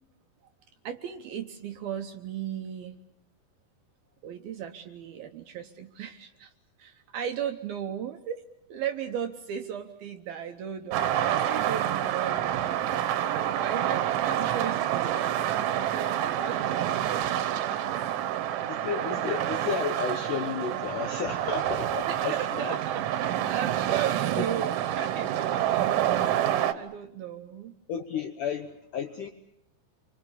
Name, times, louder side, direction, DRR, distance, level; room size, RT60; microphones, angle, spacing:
voice 1, 0.8-3.0 4.2-6.5 6.8-8.4 8.7-13.2 13.4-18.1 22.1-27.7, right 9 dB, 70° right, 5 dB, 2.5 m, -36 dB
sound 1, 10.9-26.7, right 11 dB, 85° right, 3.6 m, -28 dB
voice 2, 18.7-22.8 24.4-24.5 27.9-29.3, left 7 dB, 80° left, 6 dB, 1.8 m, -33 dB
28.5 x 24.5 x 7.2 m, 0.80 s
omnidirectional pair, 5.3 m